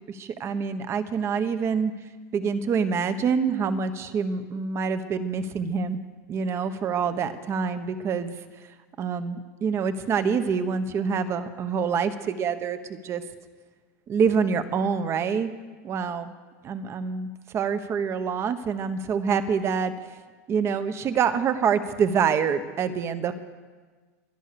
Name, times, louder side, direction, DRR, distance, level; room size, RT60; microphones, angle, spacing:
voice 1, 0.2-1.9 2.3-6.0 6.3-8.3 9.0-12.8 13.0-13.2 14.1-15.5 15.8-16.3 16.6-19.9 20.5-23.3, right 6 dB, 35° right, 10 dB, 1.2 m, -26 dB
15.5 x 11.0 x 7.0 m, 1.4 s
supercardioid pair, 125°, 8 cm